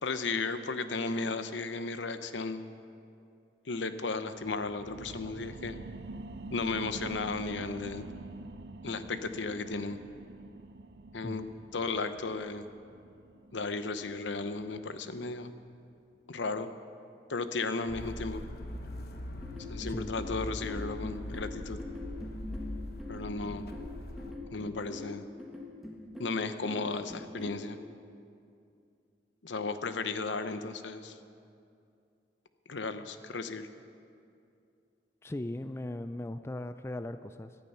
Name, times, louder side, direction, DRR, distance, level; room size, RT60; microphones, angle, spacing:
voice 1, 0.0-2.6 3.7-5.8 6.5-8.1 8.8-10.0 11.1-11.5 11.7-12.6 13.5-15.5 16.3-16.7 17.3-18.4 19.7-21.8 23.1-23.7 24.5-25.2 26.2-27.8 29.4-31.2 32.7-33.7, left 3 dB, 80° left, 10 dB, 0.8 m, -34 dB
sound 1, 4.3-15.5 15.9-16.0, right 3 dB, 60° right, 0.5 m, -46 dB
sound 2, 17.9-24.3, left 1 dB, 55° left, 1.0 m, -41 dB
sound 3, 19.4-27.6, left 2 dB, ahead, 1.6 m, -44 dB
voice 2, 35.2-37.6, left 1 dB, 15° left, 10 dB, 0.3 m, -38 dB
17.5 x 12.0 x 5.6 m, 2.5 s
head